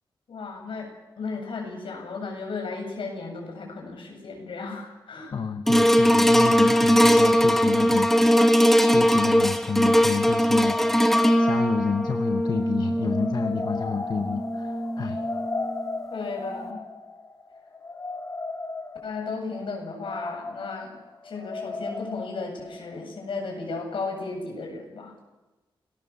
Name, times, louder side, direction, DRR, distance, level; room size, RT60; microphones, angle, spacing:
voice 1, 0.3-5.3 16.1-16.8 19.0-21.0 21.2-25.1, left 4 dB, 70° left, 2 dB, 7.7 m, -34 dB
voice 2, 5.3-8.5 8.8-11.1 11.4-15.2, left 5 dB, 50° left, 7 dB, 1.1 m, -30 dB
sound 1, 5.7-16.1 16.6-16.7, equal, 5° left, 1.5 m, -21 dB
sound 2, 10.1-23.7 24.1-24.2, left 3 dB, 35° left, 3.2 m, -37 dB
28.5 x 19.5 x 7.3 m, 1.1 s
wide cardioid pair, 155°, 9 cm